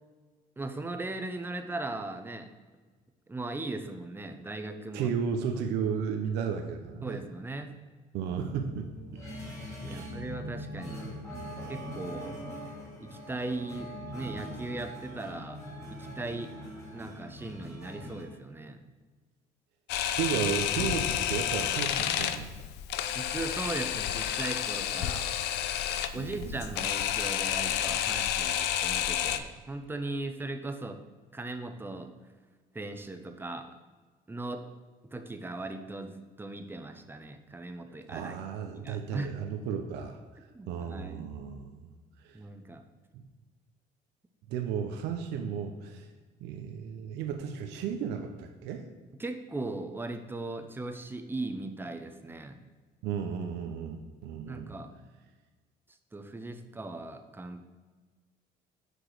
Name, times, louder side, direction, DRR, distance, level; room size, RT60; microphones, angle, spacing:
voice 1, 0.6-2.5 3.3-5.1 7.0-7.7 9.8-11.0 11.7-12.4 13.0-13.9 14.1-15.6 15.9-16.5 16.9-18.8 23.1-25.3 26.1-31.0 31.3-32.1 32.7-33.7 34.3-34.6 35.1-38.3 38.7-39.3 40.5-41.3 42.3-42.8 49.2-52.6 54.5-54.9 56.1-57.6, right 2 dB, 10° right, 7 dB, 0.6 m, -38 dB
voice 2, 4.9-7.2 8.1-8.9 9.8-10.2 20.2-22.7 26.1-26.8 38.1-40.2 40.7-41.9 42.2-42.4 43.1-43.2 44.5-46.1 46.4-48.9 53.0-54.7, right 7 dB, 90° right, 4 dB, 0.7 m, -34 dB
sound 1, 8.2-18.2, equal, 15° left, 1.7 m, -42 dB
Camera, 19.9-29.4, left 10 dB, 85° left, 0.5 m, -30 dB
6.2 x 4.9 x 4.8 m, 1.4 s
cardioid pair, 110°, 17 cm